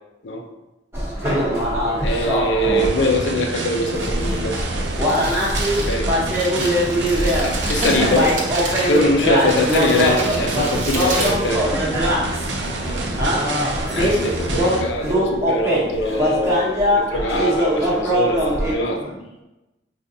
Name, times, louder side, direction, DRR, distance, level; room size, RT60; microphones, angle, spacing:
sound 1, 0.9-2.9 3.9-18.7, equal, 15° right, 0.8 m, -22 dB
voice 1, 1.2-1.6 6.6-6.8 12.8-13.4 18.8-19.4, equal, 35° left, 0 dB, 0.5 m, -33 dB
voice 2, 2.0-4.6 5.9-6.1 7.7-8.4 8.9-11.8 13.9-19.0, left 1 dB, 75° left, 2 dB, 0.5 m, -22 dB
sound 2, 2.8-14.8, right 2 dB, 75° right, 0.5 m, -28 dB
Crumpling crinkling, 4.9-12.2, right 2 dB, 45° right, 0.9 m, -30 dB
5.0 x 2.4 x 2.6 m, 1.0 s
head